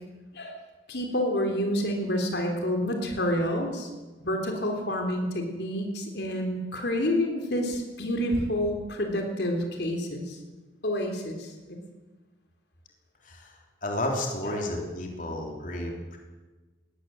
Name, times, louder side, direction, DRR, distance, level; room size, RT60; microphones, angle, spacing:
voice 1, 0.9-3.9 4.2-10.4 10.8-11.8 14.4-14.5, equal, 65° left, 3 dB, 3.6 m, -28 dB
voice 2, 13.8-16.2, left 1 dB, 45° left, 1 dB, 3.5 m, -32 dB
21.0 x 17.5 x 7.8 m, 1.2 s
head